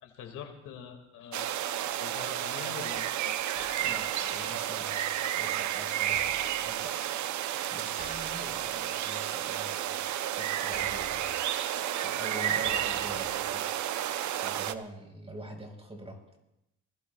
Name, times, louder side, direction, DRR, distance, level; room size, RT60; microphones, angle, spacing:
voice 1, 0.0-1.5 2.0-3.4, left 8 dB, 85° left, 4 dB, 2.1 m, -44 dB
sound 1, 1.3-14.7, right 11 dB, 70° right, 0.7 m, -31 dB
sound 2, 3.5-4.6 6.1-6.9 8.0-8.8 10.7-11.7 12.6-13.6, left 3 dB, 30° left, 1.1 m, -48 dB
voice 2, 3.8-7.0 7.7-10.0 10.3-11.4 11.9-13.7 14.4-16.4, right 1 dB, 20° right, 3 dB, 4.5 m, -45 dB
25.0 x 21.0 x 2.3 m, 0.87 s
cardioid pair, 90°, 30 cm